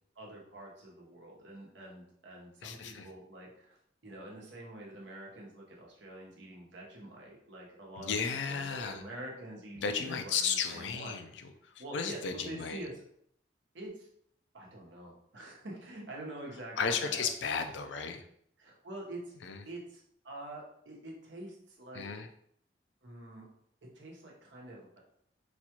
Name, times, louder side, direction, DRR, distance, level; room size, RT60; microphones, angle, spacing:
voice 1, 0.1-3.8 4.0-11.1 11.8-13.0 13.7-14.1 14.5-17.3 18.6-19.3 19.6-22.2 23.0-23.5 23.9-25.0, right 1 dB, 85° right, -2 dB, 1.0 m, -46 dB
voice 2, 2.6-3.1 8.0-9.0 9.8-12.8 16.8-18.2 19.4-19.6 21.9-22.3, left 6 dB, 80° left, 6 dB, 0.4 m, -34 dB
4.1 x 2.3 x 2.9 m, 0.68 s
head